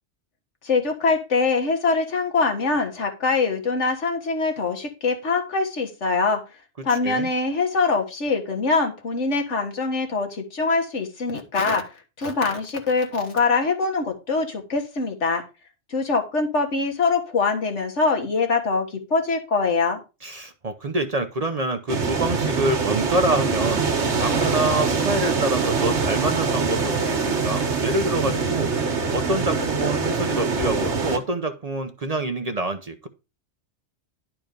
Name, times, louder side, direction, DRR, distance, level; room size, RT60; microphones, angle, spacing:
voice 1, 0.6-6.4 6.8-11.9 12.2-15.4 15.9-20.0, left 4 dB, 85° left, 1.9 m, -23 dB
voice 2, 6.9-7.3 20.2-23.8 24.1-33.1, right 2 dB, 40° right, 0.7 m, -26 dB
sound 1, 21.9-31.2, right 4 dB, 75° right, 1.6 m, -24 dB
10.5 x 4.4 x 5.1 m
omnidirectional pair, 1.2 m